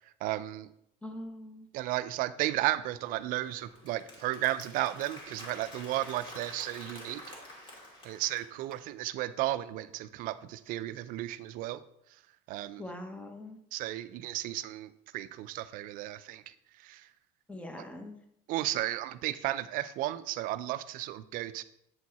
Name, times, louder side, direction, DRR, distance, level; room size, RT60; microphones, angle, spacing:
voice 1, 0.2-0.7 1.7-7.2 8.0-11.8 12.5-12.8 13.7-17.1 18.5-21.6, right 15 dB, 60° right, 13 dB, 0.5 m, -34 dB
voice 2, 1.0-1.7 12.8-13.6 17.5-18.2, left 1 dB, 10° left, 5 dB, 1.0 m, -42 dB
Applause, 3.0-8.8, left 1 dB, 35° left, 2.6 m, -48 dB
8.4 x 4.5 x 4.1 m, 0.77 s
cardioid pair, 125°, 16 cm